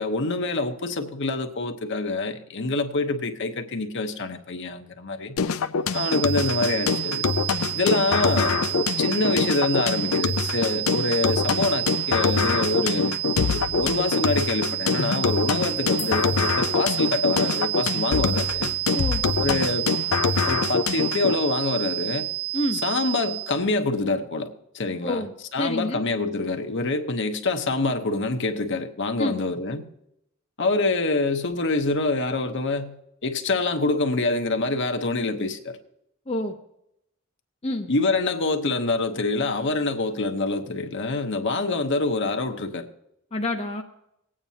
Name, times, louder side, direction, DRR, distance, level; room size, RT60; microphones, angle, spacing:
voice 1, 0.0-5.4 5.9-7.3 7.7-13.2 13.5-18.7 19.4-19.9 20.5-22.3 22.8-24.5 24.7-25.2 25.5-29.8 30.6-33.0 33.2-35.8 37.9-42.9, left 3 dB, 60° left, 6 dB, 1.0 m, -26 dB
sound 1, 5.4-21.4, left 5 dB, 80° left, 0.5 m, -25 dB
sound 2, 5.9-23.6, right 19 dB, 85° right, 0.3 m, -30 dB
voice 2, 25.0-26.0 29.2-29.4 36.3-36.6 37.6-37.9 43.3-43.8, left 1 dB, 30° left, 2 dB, 0.7 m, -28 dB
19.5 x 8.9 x 2.8 m, 0.79 s
head